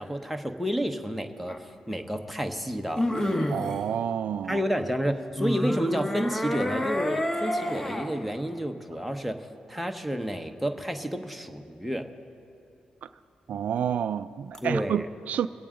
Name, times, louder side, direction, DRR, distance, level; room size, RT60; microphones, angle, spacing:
voice 1, 0.0-3.1 4.5-12.1 14.6-15.1, equal, ahead, 0.9 m, -30 dB
sound 1, 1.5-1.6 3.0-3.8 5.4-8.1 14.5-14.6, left 1 dB, 25° left, 1.3 m, -28 dB
voice 2, 3.5-4.6 13.5-15.5, right 8 dB, 70° right, 0.3 m, -29 dB
23.0 x 8.6 x 3.8 m
cardioid pair, 65°, 3 cm